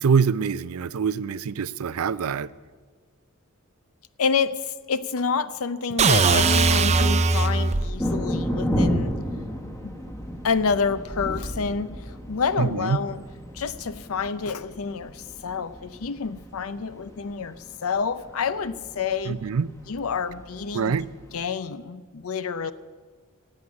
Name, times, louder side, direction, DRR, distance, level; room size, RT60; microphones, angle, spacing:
voice 1, 0.0-2.5 12.6-13.0 19.3-19.7 20.7-21.1, right 6 dB, 85° right, 0.5 m, -24 dB
voice 2, 4.2-9.1 9.8-9.9 10.4-13.2 13.5-17.6 17.8-19.4 19.9-20.9 21.3-22.7, left 5 dB, 75° left, 0.6 m, -28 dB
sound 1, 6.0-7.9, right 4 dB, 30° right, 0.6 m, -19 dB
sound 2, 6.3-21.5, equal, 15° left, 1.2 m, -33 dB
17.0 x 8.0 x 9.6 m
head